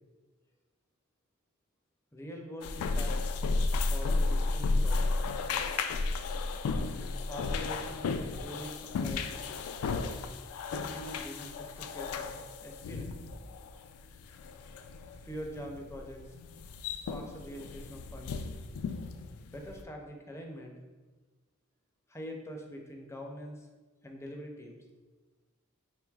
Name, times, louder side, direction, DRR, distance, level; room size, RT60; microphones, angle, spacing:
voice 1, 2.1-3.1 3.7-5.1 7.3-9.3 10.7-13.2 15.2-16.4 17.1-18.4 19.5-20.8 22.1-23.7 24.0-24.8, equal, 15° left, 1 dB, 0.4 m, -44 dB
sound 1, 2.6-19.8, left 3 dB, 90° left, 0.3 m, -33 dB
4.6 x 3.6 x 2.3 m, 1.3 s
head